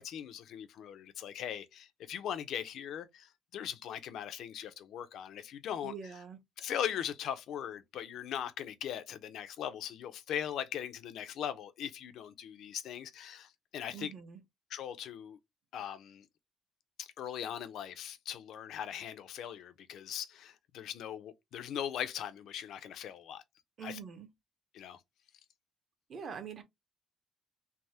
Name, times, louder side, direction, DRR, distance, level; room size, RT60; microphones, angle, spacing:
voice 1, 0.0-5.9 6.6-14.1 14.7-15.4 15.7-16.2 17.0-23.4 23.8-24.0 24.7-25.0, left 9 dB, 60° left, 0.5 m, -40 dB
voice 2, 5.8-6.4 13.9-14.4 23.8-24.3 26.1-26.6, right 6 dB, 35° right, 0.7 m, -44 dB
3.3 x 2.0 x 2.7 m
cardioid pair, 160°, 0 cm